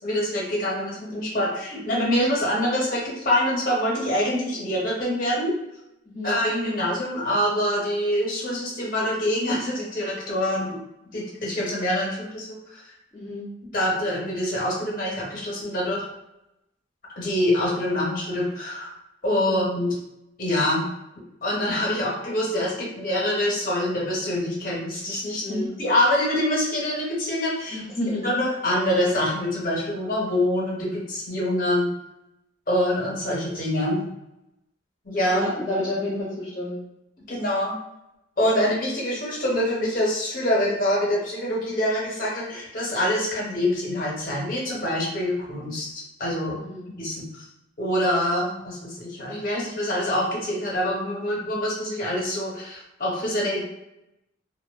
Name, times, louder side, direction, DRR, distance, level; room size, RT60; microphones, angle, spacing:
voice 1, 0.0-5.6 6.2-10.8 11.1-12.8 13.7-16.0 17.2-18.9 19.2-19.9 20.4-20.9 21.4-27.8 28.2-31.9 32.7-34.1 35.0-35.5 37.3-37.7 38.4-46.6 47.0-47.5 47.8-53.6, left 1 dB, 45° left, -4 dB, 0.7 m, -25 dB
voice 2, 13.1-13.5 19.4-19.6 25.4-25.7 27.7-28.3 35.3-36.8 46.6-46.8, left 1 dB, 20° left, -8 dB, 0.4 m, -30 dB
2.6 x 2.1 x 2.2 m, 0.87 s
head